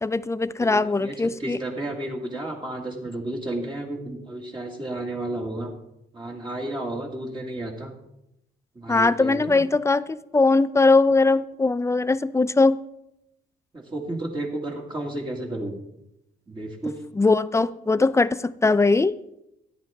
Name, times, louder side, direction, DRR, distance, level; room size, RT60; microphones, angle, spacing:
voice 1, 0.0-1.6 8.9-12.8 17.1-19.2, left 3 dB, 15° left, 16 dB, 0.4 m, -20 dB
voice 2, 0.6-1.1 1.4-5.7 6.1-7.9 8.8-9.6 13.7-15.8 16.5-17.0, right 1 dB, 25° right, -2 dB, 2.0 m, -32 dB
13.5 x 10.0 x 3.5 m, 0.84 s
cardioid pair, 90°, 20 cm